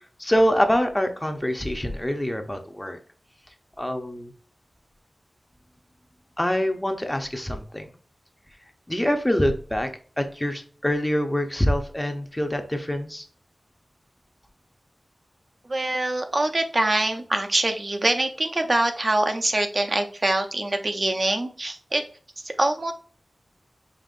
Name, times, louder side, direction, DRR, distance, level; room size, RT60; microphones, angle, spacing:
voice 1, 0.2-3.0 3.8-4.3 6.4-7.9 8.9-9.9 10.2-13.3, equal, 15° left, 6 dB, 0.6 m, -25 dB
voice 2, 15.6-22.1 22.4-22.9, right 2 dB, 40° right, 5 dB, 0.5 m, -24 dB
5.2 x 3.0 x 2.4 m, 0.42 s
wide cardioid pair, 85°, 0 cm